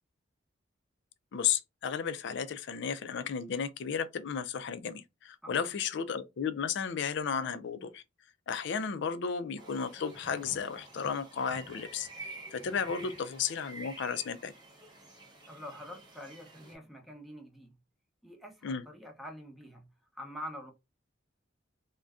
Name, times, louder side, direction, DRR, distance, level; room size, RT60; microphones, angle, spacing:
voice 1, 1.3-8.0 8.5-12.1 12.5-14.5 18.6-18.8, left 7 dB, 65° left, 0.4 m, -33 dB
sound 1, 9.6-16.7, right 2 dB, 25° right, 0.9 m, -49 dB
voice 2, 15.4-17.7 18.2-20.7, equal, ahead, 0.7 m, -46 dB
2.5 x 2.2 x 3.4 m
head